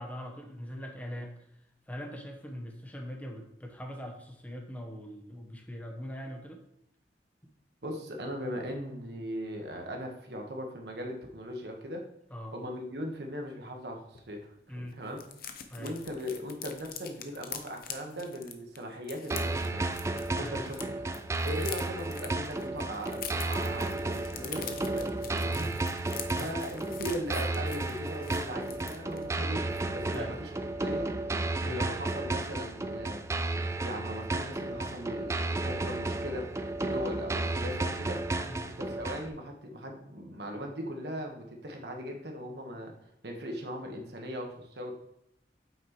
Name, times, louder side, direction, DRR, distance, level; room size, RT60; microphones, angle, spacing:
voice 1, 0.0-1.5 1.9-6.6 12.3-12.6 14.7-15.0 15.7-16.0 20.4-20.6 25.6-25.8 26.4-26.5 30.1-30.4 31.6-31.9 38.4-38.7, equal, 10° left, 3 dB, 1.0 m, -42 dB
voice 2, 7.8-12.0 12.5-14.4 14.7-15.2 15.8-19.9 20.4-20.9 21.4-25.7 26.4-29.6 29.9-31.1 31.6-33.3 33.8-38.2 38.8-42.9 43.2-44.9, equal, 70° right, 2 dB, 1.3 m, -39 dB
sound 1, 14.1-14.3 14.5-14.6 14.9-20.8 21.1-29.3 29.7-29.9 30.1-30.4, left 9 dB, 55° left, 0.7 m, -44 dB
sound 2, 19.3-39.3, right 2 dB, 15° right, 0.3 m, -33 dB
8.5 x 6.0 x 3.0 m, 0.81 s
head